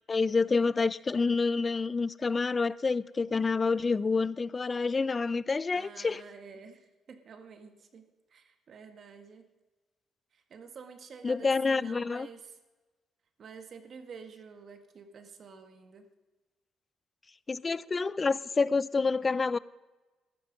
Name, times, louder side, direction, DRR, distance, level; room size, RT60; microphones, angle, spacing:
voice 1, 0.1-6.2 11.2-12.3 17.5-19.6, left 4 dB, 30° left, 0.4 m, -28 dB
voice 2, 5.7-9.4 10.3-12.6 13.4-16.1, right 5 dB, 55° right, 1.6 m, -49 dB
14.5 x 12.0 x 5.2 m
cardioid pair, 90°, 0 cm